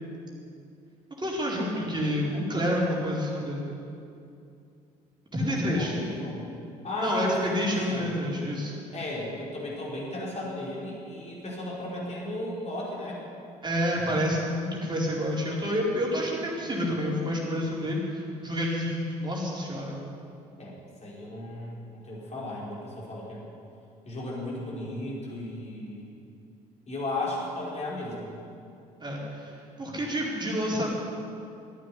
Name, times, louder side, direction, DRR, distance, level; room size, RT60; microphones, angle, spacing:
voice 1, 1.2-3.7 5.3-6.0 7.0-8.7 13.6-19.9 29.0-30.9, equal, 20° right, -4 dB, 4.5 m, -29 dB
voice 2, 5.4-6.5 6.8-8.1 8.9-13.2 20.6-23.4 24.0-26.1 26.9-28.3, left 1 dB, 35° left, -5 dB, 5.0 m, -35 dB
14.0 x 9.4 x 9.9 m, 2.6 s
figure-of-eight pair, 50°, 20 cm